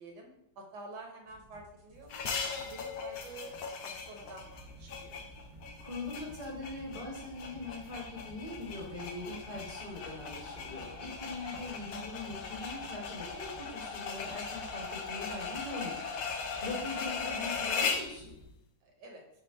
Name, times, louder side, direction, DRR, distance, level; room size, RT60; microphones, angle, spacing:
voice 1, 0.0-3.5 3.8-5.2 13.6-13.9 16.4-16.6 18.8-19.2, right 3 dB, 70° right, 2 dB, 1.2 m, -49 dB
sound 1, 1.3-18.5, right 1 dB, 85° right, 1.8 m, -53 dB
sound 2, 2.1-18.2, left 5 dB, 70° left, 1.0 m, -39 dB
voice 2, 5.8-16.3 16.6-18.3, left 2 dB, 25° left, -6 dB, 1.0 m, -42 dB
5.1 x 2.1 x 4.5 m, 0.77 s
omnidirectional pair, 1.9 m